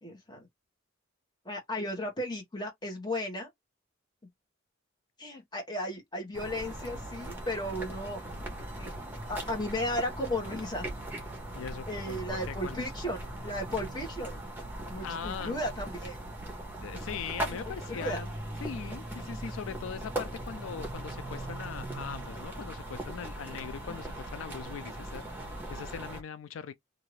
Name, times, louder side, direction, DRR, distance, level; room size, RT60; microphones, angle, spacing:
voice 1, 0.0-0.4 1.4-3.5 5.2-8.2 8.8-10.9 11.9-14.4 14.9-16.2 17.6-18.2 23.8-24.0, left 1 dB, 20° left, 1.2 m, -35 dB
sound 1, 6.3-26.2, right 1 dB, 10° right, 1.0 m, -39 dB
voice 2, 11.5-12.8 15.0-15.5 16.8-18.3 18.6-26.7, left 7 dB, 85° left, 0.4 m, -40 dB
2.7 x 2.6 x 3.1 m
head